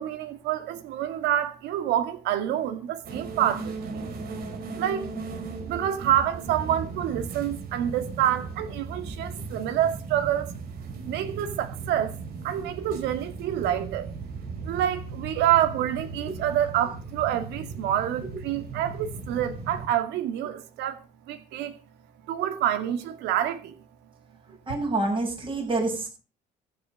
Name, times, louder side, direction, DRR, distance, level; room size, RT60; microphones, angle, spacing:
voice 1, 0.0-4.0 4.7-5.1 5.6-10.5 11.1-12.2 12.4-14.1 14.6-21.0 21.3-21.7 22.3-23.7, right 11 dB, 90° right, 2.2 m, -27 dB
sound 1, 3.0-19.9, right 4 dB, 65° right, 4.1 m, -37 dB
voice 2, 24.7-26.1, right 2 dB, 30° right, 7.6 m, -27 dB
15.0 x 9.5 x 6.6 m
cardioid pair, 110°, 17 cm